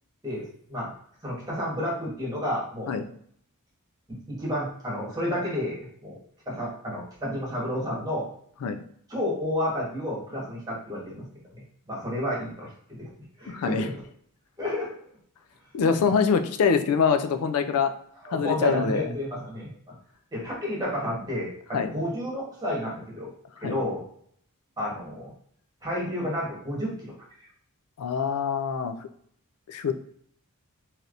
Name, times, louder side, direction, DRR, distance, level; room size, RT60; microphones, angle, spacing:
voice 1, 0.2-0.9 1.2-3.0 4.1-6.2 6.5-8.3 9.1-11.2 11.5-12.7 13.0-13.1 13.4-14.0 14.6-15.0 16.0-16.1 18.2-19.7 20.3-23.3 23.6-24.0 24.8-25.3 25.8-27.1, left 1 dB, 15° right, -5 dB, 1.2 m, -31 dB
voice 2, 13.5-13.9 15.7-17.9 18.3-19.1 21.7-21.9 23.6-23.8 28.0-28.9 29.7-29.9, left 6 dB, 75° left, 9 dB, 0.4 m, -24 dB
3.3 x 2.7 x 2.5 m, 0.63 s
head